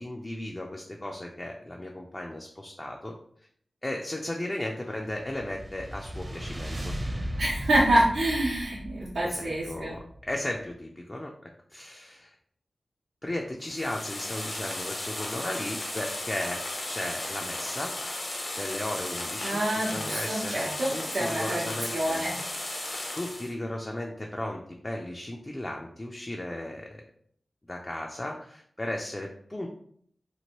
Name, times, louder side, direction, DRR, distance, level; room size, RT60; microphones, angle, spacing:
voice 1, 0.0-3.1 3.8-6.9 9.2-11.3 11.7-12.3 13.2-16.6 16.9-17.9 18.6-22.3 23.1-27.0 27.7-29.7, left 1 dB, 25° left, 0 dB, 0.4 m, -35 dB
sound 1, 5.0-10.4, equal, 35° right, 0.6 m, -36 dB
voice 2, 7.4-10.0 19.4-21.6 21.9-22.3, right 1 dB, 85° right, -8 dB, 0.8 m, -27 dB
sound 2, 13.6-23.5, left 1 dB, 65° left, 0.7 m, -35 dB
3.0 x 2.5 x 2.9 m, 0.64 s
wide cardioid pair, 60°, 0 cm